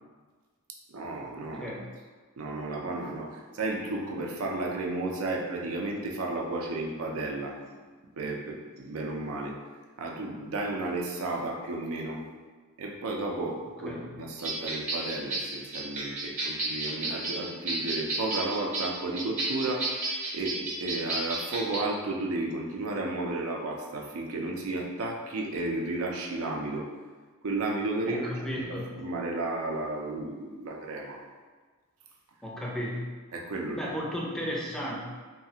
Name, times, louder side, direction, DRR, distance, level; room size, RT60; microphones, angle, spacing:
voice 1, 0.9-1.8 2.4-7.6 8.2-9.6 10.0-12.2 12.8-26.9 27.4-28.6 29.0-31.2 33.3-33.8, right 2 dB, 75° right, 0 dB, 0.5 m, -33 dB
sound 1, 14.4-21.8, right 2 dB, 35° right, 0.8 m, -32 dB
voice 2, 28.1-29.0 32.4-33.1 33.8-35.0, equal, ahead, -4 dB, 0.4 m, -34 dB
3.0 x 2.4 x 2.8 m, 1.4 s
head